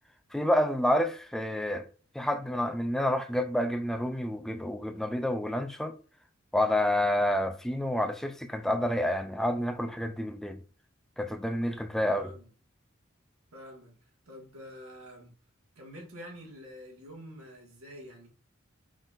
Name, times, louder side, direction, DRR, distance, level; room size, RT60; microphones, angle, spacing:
voice 1, 0.3-1.9 2.2-5.9 6.5-10.6 11.2-12.3, left 1 dB, ahead, 0.3 m, -29 dB
voice 2, 12.1-12.5 13.5-15.3 15.7-18.3, equal, 85° right, 1.6 m, -47 dB
4.0 x 3.8 x 2.5 m
head